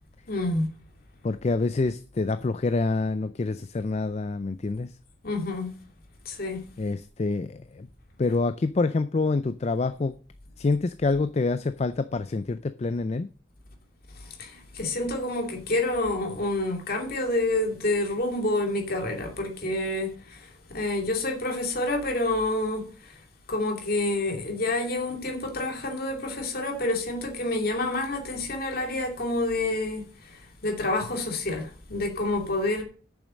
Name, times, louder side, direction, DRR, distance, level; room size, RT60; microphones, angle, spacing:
voice 1, 0.3-0.7 5.2-5.7 6.3-6.6 14.4-22.9 23.5-32.8, left 2 dB, 50° left, 2.5 m, -28 dB
voice 2, 1.2-4.9 6.8-7.9 8.2-10.1 10.6-13.3, left 3 dB, 30° left, 0.4 m, -26 dB
8.6 x 7.1 x 6.3 m
head